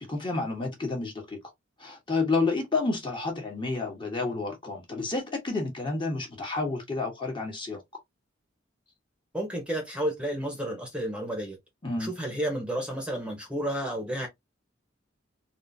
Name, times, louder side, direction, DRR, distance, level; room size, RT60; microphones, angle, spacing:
voice 1, 0.1-1.4 1.8-7.8 11.8-12.1, left 3 dB, 25° left, 1.2 m, -30 dB
voice 2, 9.3-11.6 12.0-14.3, right 1 dB, 5° right, 0.9 m, -31 dB
3.7 x 2.5 x 2.6 m
head